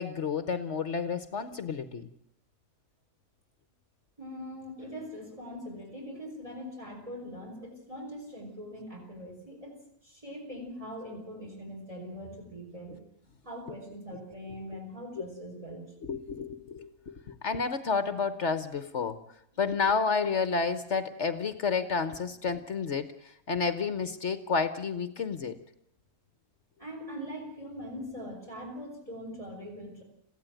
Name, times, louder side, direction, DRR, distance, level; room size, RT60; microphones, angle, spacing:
voice 1, 0.0-2.1 16.0-17.1 17.4-19.2 19.6-25.6, left 5 dB, 55° left, 12 dB, 1.3 m, -30 dB
voice 2, 4.2-9.8 10.0-13.0 13.4-15.9 26.8-30.0, equal, 20° right, 2 dB, 5.6 m, -42 dB
22.0 x 15.5 x 9.1 m, 0.75 s
omnidirectional pair, 1.5 m